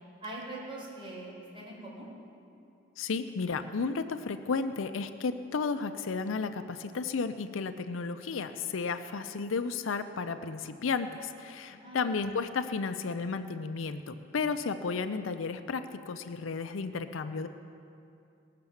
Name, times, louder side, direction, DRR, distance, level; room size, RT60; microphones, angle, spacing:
voice 1, 0.2-2.1 11.7-12.3, right 2 dB, 25° right, -6 dB, 4.0 m, -43 dB
voice 2, 3.0-17.5, left 4 dB, 90° left, 9 dB, 0.5 m, -33 dB
18.5 x 6.7 x 7.2 m, 2.6 s
head